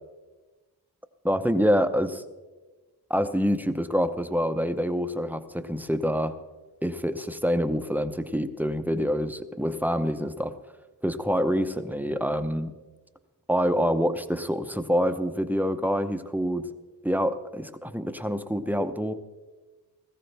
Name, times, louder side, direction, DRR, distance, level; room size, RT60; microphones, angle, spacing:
voice 1, 1.2-2.2 3.1-6.4 6.8-10.6 11.0-12.7 13.5-16.7 17.0-19.1, equal, 5° right, 8 dB, 0.7 m, -26 dB
18.5 x 15.0 x 3.4 m, 1.3 s
wide cardioid pair, 80°, 41 cm